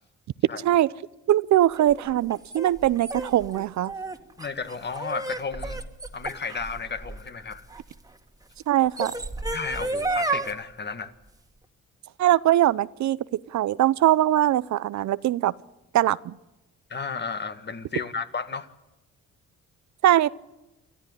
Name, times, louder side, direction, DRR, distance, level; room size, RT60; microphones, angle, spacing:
voice 1, 1.3-3.9 8.7-9.1 12.2-15.5 15.9-16.4 20.0-20.3, right 13 dB, 65° right, 18 dB, 0.7 m, -21 dB
sound 1, 1.8-7.9 8.7-10.5, right 2 dB, 10° right, 2.0 m, -32 dB
voice 2, 4.4-5.8 6.1-7.7 9.5-11.1 16.9-18.7, left 5 dB, 35° left, 10 dB, 1.9 m, -33 dB
27.5 x 13.5 x 9.8 m, 0.99 s
cardioid pair, 90°, 30 cm